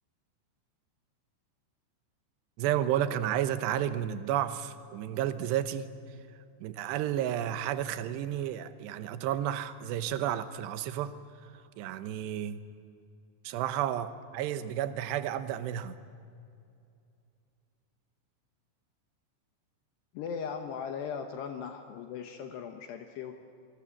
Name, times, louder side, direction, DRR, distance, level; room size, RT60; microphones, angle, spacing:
voice 1, 2.6-5.9 6.6-11.1 11.4-12.6 13.4-16.0, right 11 dB, 75° right, 10 dB, 3.0 m, -32 dB
voice 2, 20.1-23.4, left 7 dB, 75° left, 5 dB, 3.1 m, -38 dB
27.0 x 23.0 x 7.4 m, 2.5 s
omnidirectional pair, 5.3 m